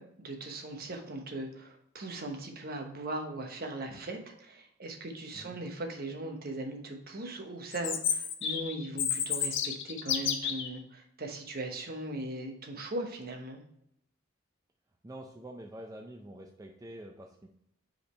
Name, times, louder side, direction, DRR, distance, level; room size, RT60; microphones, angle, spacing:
voice 1, 0.0-13.6, right 2 dB, 50° right, 4 dB, 1.0 m, -39 dB
Chirp tweet, 7.7-10.7, left 8 dB, 65° left, 0.7 m, -31 dB
voice 2, 15.0-17.5, right 1 dB, 15° right, 2 dB, 0.4 m, -46 dB
5.2 x 5.0 x 4.2 m, 0.74 s
head